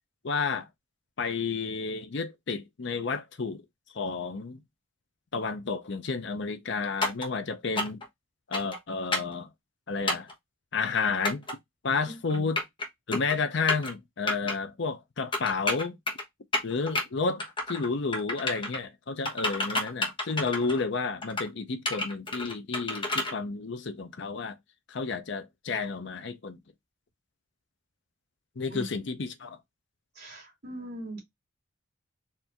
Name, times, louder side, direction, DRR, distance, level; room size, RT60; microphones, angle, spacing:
voice 1, 0.2-0.7 1.2-3.6 3.9-4.6 5.3-8.0 8.5-9.5 9.9-10.3 10.7-11.4 11.8-12.6 13.1-16.0 16.6-17.4 17.7-24.6 24.9-26.6 28.6-29.6, left 4 dB, 55° left, 0.6 m, -31 dB
sound 1, 7.0-7.3 7.8-8.1 8.5-8.8 9.1-9.4 10.1-10.3 11.3-11.5 12.3-12.9 13.1-13.4 13.7-13.9 14.3-14.6 15.3-16.2 16.5-17.0 17.4-17.9 18.1-18.8 19.3-20.8 21.2-21.5 21.9-23.3, left 2 dB, 25° left, 1.0 m, -30 dB
voice 2, 12.0-12.4 28.7-28.9 30.1-31.2, right 1 dB, 50° right, 2.5 m, -41 dB
4.3 x 2.6 x 3.4 m
head